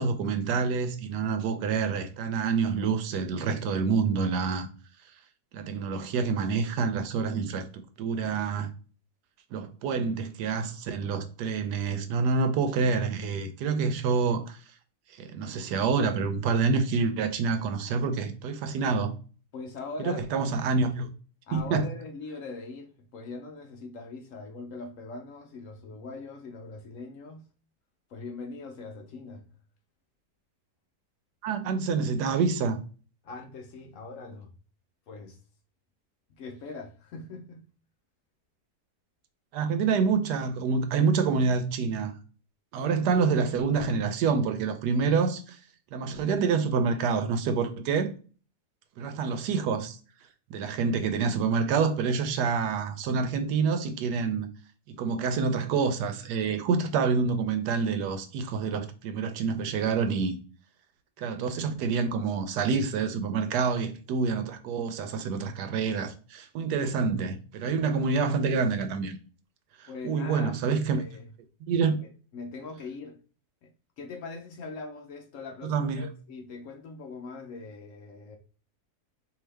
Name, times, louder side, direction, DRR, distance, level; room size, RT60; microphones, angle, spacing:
voice 1, 0.0-4.7 5.5-8.7 9.5-14.6 15.1-19.1 20.0-21.1 21.5-21.9 31.4-32.8 39.5-42.1 42.7-45.6 45.9-48.1 49.0-50.0 50.5-54.5 54.9-60.4 61.2-69.2 69.8-71.0 71.7-72.0 75.6-76.1, right 5 dB, 80° right, 1.2 m, -27 dB
voice 2, 19.5-20.3 21.5-27.5 28.1-29.5 33.2-34.5 35.1-35.4 36.3-37.7 43.0-43.1 67.6-68.1 69.9-70.6 70.9-71.3 71.9-72.0 72.3-73.2 73.6-78.4, left 3 dB, 65° left, 0.9 m, -41 dB
4.6 x 2.8 x 3.3 m
omnidirectional pair, 1.7 m